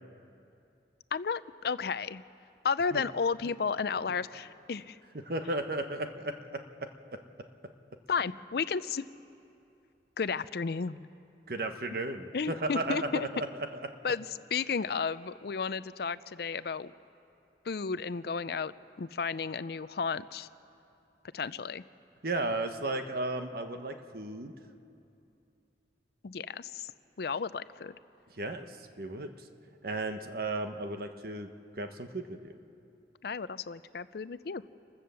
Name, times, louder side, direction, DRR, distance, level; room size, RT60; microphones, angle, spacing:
voice 1, 1.1-2.2 2.6-5.0 8.1-9.0 10.2-11.1 12.3-13.3 14.0-14.3 14.5-16.9 17.7-18.7 19.0-20.5 21.3-21.8 26.2-26.9 27.2-27.9 33.2-34.6, left 5 dB, 60° left, 15 dB, 0.5 m, -33 dB
voice 2, 5.2-6.9 11.5-13.7 22.2-24.5 28.4-29.3 29.8-31.5 31.8-32.5, right 2 dB, 55° right, 7 dB, 1.1 m, -34 dB
28.5 x 15.5 x 6.9 m, 2.7 s
head